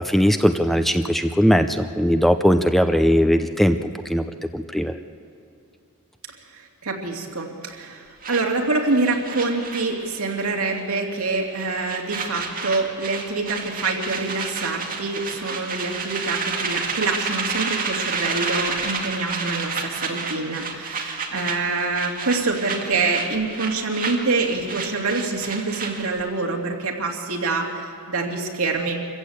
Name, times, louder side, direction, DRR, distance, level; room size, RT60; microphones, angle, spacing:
voice 1, 0.0-4.2 4.5-5.0, equal, ahead, 8 dB, 0.5 m, -19 dB
voice 2, 6.5-29.0, right 3 dB, 75° right, 0 dB, 2.6 m, -26 dB
sound 1, 8.2-10.5 10.7-11.0 11.3-26.2, right 4 dB, 40° right, 2.3 m, -30 dB
25.5 x 15.0 x 8.1 m, 2.4 s
head